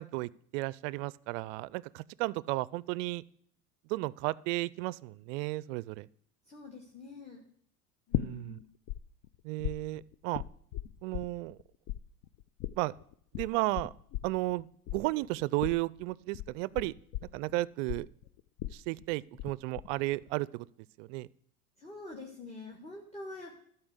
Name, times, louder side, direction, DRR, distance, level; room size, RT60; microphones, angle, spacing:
voice 1, 0.0-3.2 3.9-6.1 8.1-8.6 9.4-10.4 11.0-11.6 12.8-12.9 13.3-13.9 14.2-14.7 14.9-16.9 17.3-18.1 18.7-20.7 21.0-21.3, right 20 dB, 55° right, 22 dB, 0.5 m, -33 dB
voice 2, 6.4-7.4 8.1-8.6 21.8-23.6, left 2 dB, 15° left, 1 dB, 1.6 m, -46 dB
sound 1, 8.1-9.0 9.2-11.6 11.9-19.5 19.8-20.3, left 13 dB, 50° left, 0.6 m, -37 dB
12.0 x 4.6 x 8.1 m, 0.64 s
hypercardioid pair, 90°, 44 cm